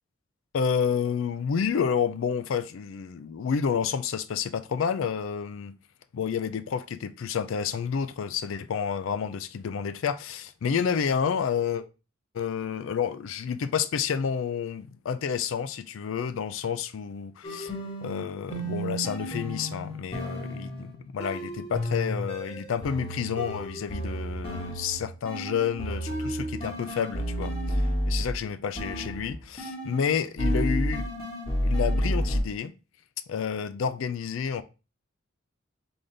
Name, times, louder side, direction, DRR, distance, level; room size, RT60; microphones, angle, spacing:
voice 1, 0.5-5.7 6.1-11.8 12.3-17.7 18.0-31.1 31.6-32.7 33.3-34.6, left 7 dB, 70° left, 0.4 m, -29 dB
sound 1, 17.4-28.4 28.8-30.1 30.4-32.4, equal, 25° left, 1.3 m, -31 dB
3.9 x 3.8 x 3.2 m
head